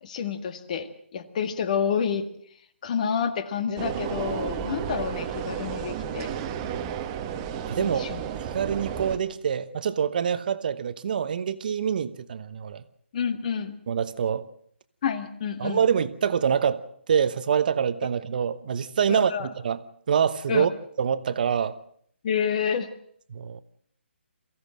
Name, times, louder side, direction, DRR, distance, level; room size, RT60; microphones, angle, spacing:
voice 1, 0.0-2.3 2.8-6.3 7.8-8.2 13.1-13.8 15.0-15.8 19.1-19.5 20.5-20.7 22.2-22.9, left 7 dB, 35° left, 1.9 m, -29 dB
sound 1, 3.8-9.2, right 8 dB, 20° right, 1.3 m, -32 dB
voice 2, 7.7-8.2 8.5-12.8 13.9-14.5 15.6-16.8 17.1-19.8 20.1-20.7 21.0-21.8 23.3-23.6, right 7 dB, 45° right, 1.1 m, -25 dB
23.0 x 16.0 x 7.6 m
hypercardioid pair, 165°, 7 cm